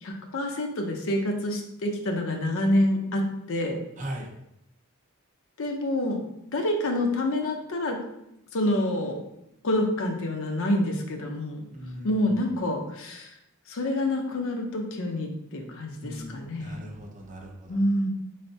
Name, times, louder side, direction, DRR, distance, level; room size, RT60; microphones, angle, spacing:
voice 1, 0.0-3.8 5.6-6.2 6.5-8.0 8.5-9.2 9.6-11.7 12.0-13.3 13.7-16.8 17.7-18.1, left 1 dB, 65° left, 3 dB, 0.6 m, -27 dB
voice 2, 4.0-4.3 11.7-12.4 16.0-17.8, equal, 35° right, 0 dB, 0.6 m, -39 dB
3.7 x 3.3 x 2.7 m, 0.81 s
head